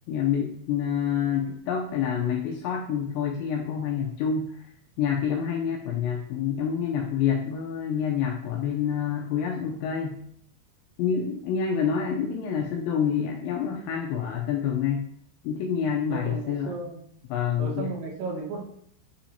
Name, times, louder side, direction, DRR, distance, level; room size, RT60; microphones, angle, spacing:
voice 1, 0.1-4.7 5.0-10.2 11.0-15.1 15.4-16.8 17.3-17.9, left 7 dB, 85° left, 1 dB, 2.6 m, -27 dB
voice 2, 16.1-17.0 17.6-18.6, right 4 dB, 90° right, -3 dB, 4.2 m, -34 dB
8.5 x 5.8 x 2.8 m, 0.67 s
omnidirectional pair, 5.8 m